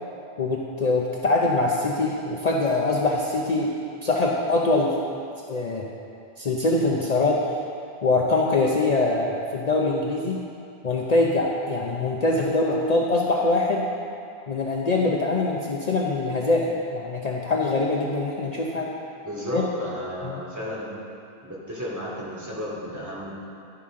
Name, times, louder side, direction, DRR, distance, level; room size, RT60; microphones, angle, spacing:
voice 1, 0.4-3.7 4.0-4.9 5.5-5.9 6.4-7.4 8.0-10.4 10.8-13.9 14.5-18.9 19.5-19.6 20.2-20.4, left 2 dB, 45° left, -2 dB, 0.8 m, -23 dB
voice 2, 19.2-20.9 21.4-23.3, equal, 15° right, -7 dB, 2.3 m, -33 dB
11.5 x 9.7 x 3.7 m, 2.5 s
omnidirectional pair, 1.0 m